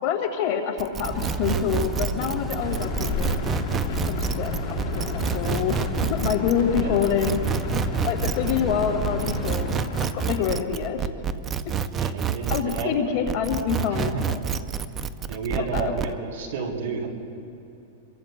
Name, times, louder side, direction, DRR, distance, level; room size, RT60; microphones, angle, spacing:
voice 1, 0.0-3.4 4.0-7.4 8.0-11.1 12.5-14.4 15.5-15.9, left 8 dB, 45° left, 2 dB, 2.1 m, -27 dB
sound 1, 0.8-12.9 13.3-16.1, right 7 dB, 20° right, 0.5 m, -28 dB
sound 2, 1.1-9.7, left 1 dB, 5° right, 1.2 m, -31 dB
sound 3, 2.6-10.6, left 8 dB, 75° left, 1.0 m, -36 dB
voice 2, 12.0-13.2 13.9-14.2 15.3-17.1, right 4 dB, 75° right, 1 dB, 3.4 m, -31 dB
27.5 x 22.5 x 2.3 m, 2.8 s
supercardioid pair, 145°, 0 cm